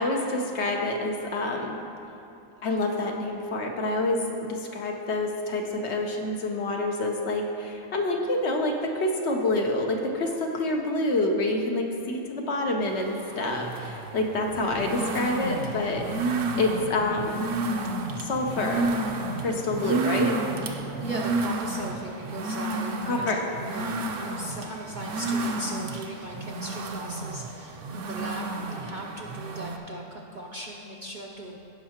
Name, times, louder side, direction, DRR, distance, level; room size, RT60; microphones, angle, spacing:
voice 1, 0.0-1.8 2.6-16.0 16.6-17.5 18.2-18.9 19.4-20.3 23.0-23.4, left 2 dB, 60° left, 2 dB, 0.9 m, -27 dB
sound 1, 12.8-29.8, right 3 dB, 65° right, 0.9 m, -31 dB
sound 2, 14.5-17.9 18.3-21.3, left 1 dB, 40° left, 0.4 m, -40 dB
voice 2, 21.0-23.3 23.6-31.6, right 1 dB, 50° right, -1 dB, 0.6 m, -38 dB
16.0 x 5.6 x 2.9 m, 2.8 s
omnidirectional pair, 1.4 m